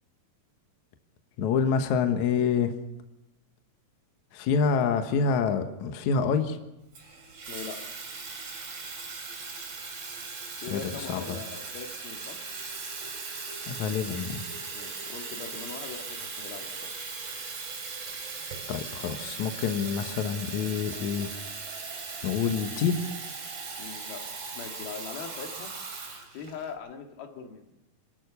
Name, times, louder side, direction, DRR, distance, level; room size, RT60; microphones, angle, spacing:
voice 1, 1.4-2.7 4.3-6.6 10.7-11.2 13.7-14.4 18.7-21.3 22.2-23.0, left 6 dB, 65° left, 7 dB, 2.3 m, -27 dB
Water tap faucet / Fill (with liquid), 6.9-26.7, right 4 dB, 40° right, 3.6 m, -39 dB
voice 2, 7.5-7.8 10.6-12.4 14.7-16.9 23.8-24.2 24.5-25.7 26.3-27.7, left 6 dB, 80° left, 4 dB, 3.7 m, -41 dB
26.5 x 14.0 x 6.9 m, 0.92 s
omnidirectional pair, 4.3 m